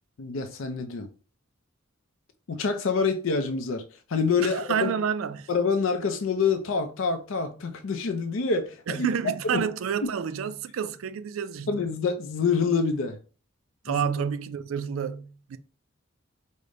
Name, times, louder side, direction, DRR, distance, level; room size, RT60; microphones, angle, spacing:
voice 1, 0.2-1.1 2.5-4.9 5.5-9.1 9.5-9.6 11.7-13.2 13.9-14.1, left 5 dB, 75° left, 0.5 m, -26 dB
voice 2, 4.4-5.5 8.9-11.9 13.8-15.6, right 7 dB, 85° right, 0.4 m, -29 dB
5.0 x 2.1 x 3.8 m
head